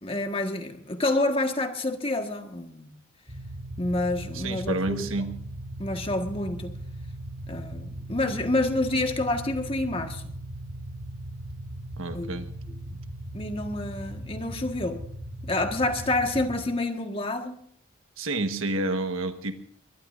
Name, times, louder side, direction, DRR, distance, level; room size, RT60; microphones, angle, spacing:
voice 1, 0.0-2.9 3.8-5.1 5.8-6.8 7.5-10.2 12.1-12.4 12.9-13.0 13.3-15.0 15.4-17.6, left 2 dB, 25° left, 5 dB, 1.5 m, -28 dB
sound 1, 3.3-16.6, right 1 dB, 50° right, 4.8 m, -38 dB
voice 2, 4.3-5.4 12.0-12.5 18.2-19.6, right 2 dB, 90° right, 8 dB, 1.3 m, -29 dB
23.0 x 21.0 x 2.6 m, 0.66 s
head